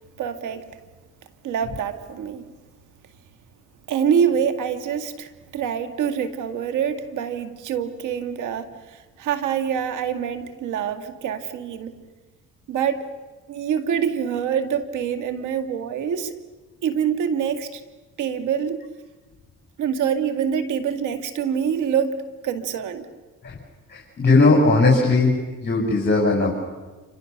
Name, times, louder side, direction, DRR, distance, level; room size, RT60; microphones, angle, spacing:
voice 1, 0.2-0.7 1.4-2.4 3.9-12.0 12.7-13.1 13.5-16.4 16.8-17.8 18.2-18.8 19.8-23.1, right 8 dB, 85° right, 8 dB, 2.3 m, -25 dB
voice 2, 23.9-25.4 25.6-26.5, left 3 dB, 35° left, -1 dB, 6.0 m, -18 dB
29.0 x 26.0 x 6.8 m, 1.3 s
cardioid pair, 90°, 30 cm